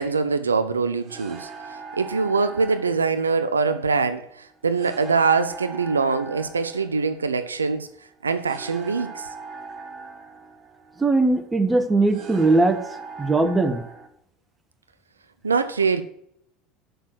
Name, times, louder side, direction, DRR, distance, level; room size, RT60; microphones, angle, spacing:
voice 1, 0.0-1.5 2.0-7.9 8.2-9.3 15.4-16.0, right 4 dB, 85° right, 0.4 m, -23 dB
sound 1, 1.0-14.1, right 4 dB, 45° right, 1.4 m, -41 dB
voice 2, 11.0-12.8 13.2-13.8, right 2 dB, 15° right, 1.2 m, -19 dB
6.5 x 6.1 x 6.2 m
figure-of-eight pair, 70°, 0 cm